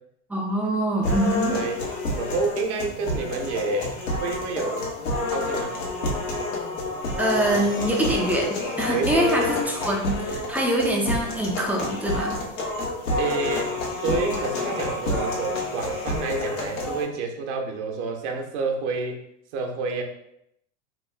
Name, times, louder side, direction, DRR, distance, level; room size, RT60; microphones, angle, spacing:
voice 1, 0.3-1.6 7.2-12.4, right 1 dB, 5° right, -1 dB, 0.3 m, -24 dB
sound 1, 1.0-17.0, left 2 dB, 80° left, 1.1 m, -29 dB
voice 2, 1.0-1.8 2.1-3.9 4.2-4.9 5.3-5.8 8.9-9.6 13.2-13.8 14.0-19.2 19.5-20.0, right 3 dB, 65° right, 3 dB, 0.8 m, -29 dB
2.9 x 2.3 x 3.2 m, 0.77 s
hypercardioid pair, 110°, 38 cm